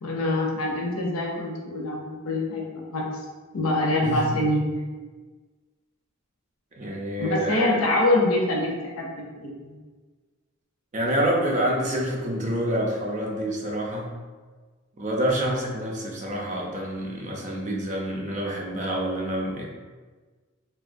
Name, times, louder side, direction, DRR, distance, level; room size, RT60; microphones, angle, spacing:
voice 1, 0.0-3.1 3.5-4.8 7.2-8.7 9.0-9.8, left 1 dB, 75° left, -1 dB, 0.6 m, -25 dB
voice 2, 4.0-4.4 6.8-7.7 10.9-14.1 15.0-19.6, right 1 dB, 35° right, -1 dB, 0.5 m, -27 dB
3.3 x 2.2 x 2.5 m, 1.4 s
head